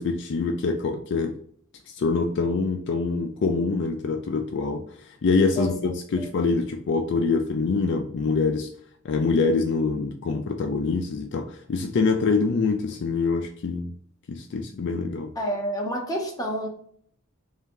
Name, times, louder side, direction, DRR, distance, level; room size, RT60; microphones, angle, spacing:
voice 1, 0.0-1.4 1.9-4.8 5.2-8.7 9.0-13.9 14.3-15.3, left 4 dB, 55° left, 4 dB, 0.4 m, -25 dB
voice 2, 15.4-16.7, equal, 20° left, 0 dB, 0.9 m, -29 dB
3.5 x 2.8 x 3.7 m, 0.62 s
head